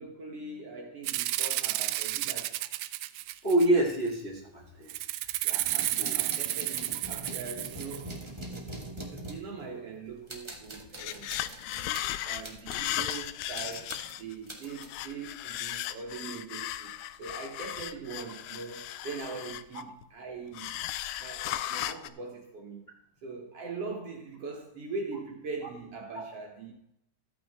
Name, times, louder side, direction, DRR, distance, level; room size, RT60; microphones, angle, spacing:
voice 1, 0.0-2.6 5.4-11.4 11.8-11.9 12.2-20.7 21.2-22.8 23.2-26.7, right 4 dB, 55° right, 2.1 m, -42 dB
Rattle (instrument), 1.0-3.9 4.9-8.1, right 16 dB, 80° right, 1.6 m, -32 dB
voice 2, 3.4-4.9 5.5-6.2 19.7-19.8 26.1-26.2, right 1 dB, 20° left, 2.1 m, -28 dB
sound 1, 5.6-10.0 10.3-13.3 13.5-15.0, right 1 dB, 35° right, 0.4 m, -43 dB
sound 2, 10.4-10.5 10.7-14.3 14.7-20.0 20.5-22.1, left 14 dB, 80° left, 1.9 m, -36 dB
13.5 x 8.6 x 3.6 m
omnidirectional pair, 3.6 m